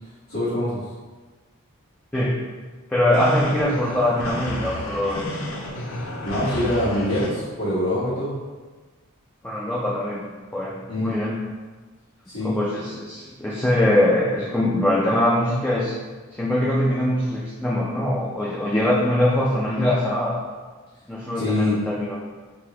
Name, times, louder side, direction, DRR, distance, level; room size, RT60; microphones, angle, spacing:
voice 1, 0.3-0.8 6.2-8.3 10.9-11.2 12.3-12.6 21.3-21.8, left 1 dB, 90° left, -13 dB, 1.3 m, -24 dB
voice 2, 2.9-5.6 9.4-11.4 12.4-15.9 16.3-20.4 21.1-22.2, left 1 dB, 10° left, -7 dB, 0.4 m, -22 dB
sound 1, 3.1-7.3, left 1 dB, 70° left, 0.5 m, -32 dB
3.7 x 2.9 x 2.9 m, 1.3 s
head